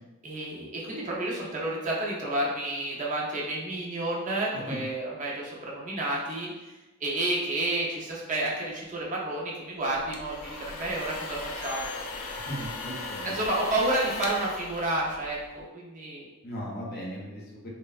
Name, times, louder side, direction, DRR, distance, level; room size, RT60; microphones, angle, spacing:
voice 1, 0.2-6.7 7.0-11.9 13.2-16.3, right 1 dB, 35° right, -4 dB, 0.5 m, -30 dB
voice 2, 4.5-4.8 12.4-13.3 16.4-17.7, equal, 50° left, -3 dB, 0.7 m, -37 dB
sound 1, 9.9-15.6, left 3 dB, 80° left, 0.4 m, -38 dB
3.1 x 2.1 x 2.3 m, 1.1 s
head